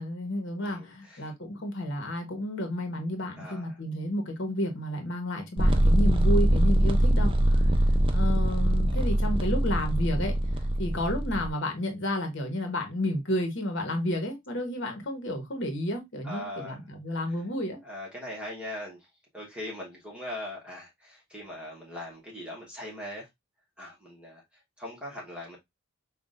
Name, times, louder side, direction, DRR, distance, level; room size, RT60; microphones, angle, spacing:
voice 1, 0.0-7.7 8.1-17.8, left 1 dB, 60° left, 1.1 m, -31 dB
voice 2, 0.6-1.3 3.4-3.8 16.2-16.8 17.8-19.1 19.3-23.3 23.8-24.4 24.8-25.6, left 1 dB, 5° right, 1.1 m, -40 dB
sound 1, 5.6-11.5, right 1 dB, 25° right, 0.5 m, -23 dB
5.8 x 2.3 x 2.5 m
head